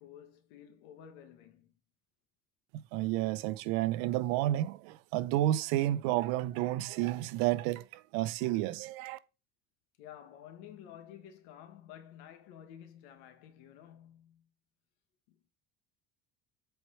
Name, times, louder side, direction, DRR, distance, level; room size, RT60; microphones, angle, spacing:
voice 1, 0.0-1.7 10.0-14.5 15.3-15.4, left 10 dB, 85° left, 1.6 m, -52 dB
voice 2, 2.7-9.2, right 14 dB, 85° right, 0.8 m, -31 dB
8.0 x 4.6 x 4.3 m
cardioid pair, 130°, 34 cm